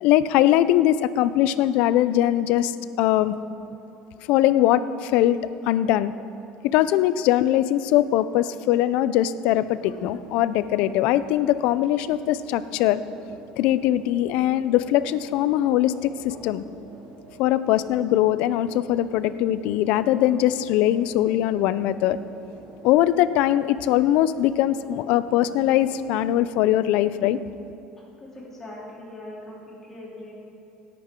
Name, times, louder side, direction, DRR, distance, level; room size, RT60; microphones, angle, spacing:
voice 1, 0.0-3.4 4.3-5.4 5.7-6.1 6.6-13.0 13.6-16.6 17.4-22.2 22.8-27.4, left 13 dB, 65° left, 15 dB, 0.5 m, -21 dB
sound 1, 9.6-26.3, right 3 dB, 75° right, 3.1 m, -47 dB
voice 2, 28.2-30.3, left 1 dB, 20° left, -5 dB, 3.0 m, -41 dB
17.0 x 10.5 x 3.7 m, 2.8 s
cardioid pair, 150°, 2 cm